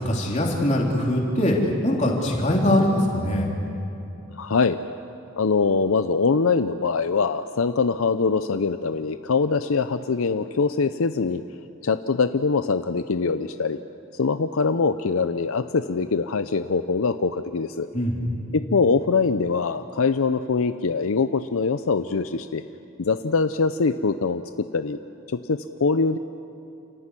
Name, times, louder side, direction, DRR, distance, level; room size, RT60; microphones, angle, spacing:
voice 1, 0.0-1.6 1.8-3.5 17.9-18.2, left 1 dB, 30° left, -1 dB, 3.5 m, -22 dB
voice 2, 4.3-4.8 5.4-11.4 11.8-13.8 14.1-17.9 18.5-22.6 23.0-25.0 25.3-26.2, left 4 dB, 70° left, 10 dB, 0.6 m, -23 dB
29.0 x 14.5 x 9.8 m, 2.8 s
head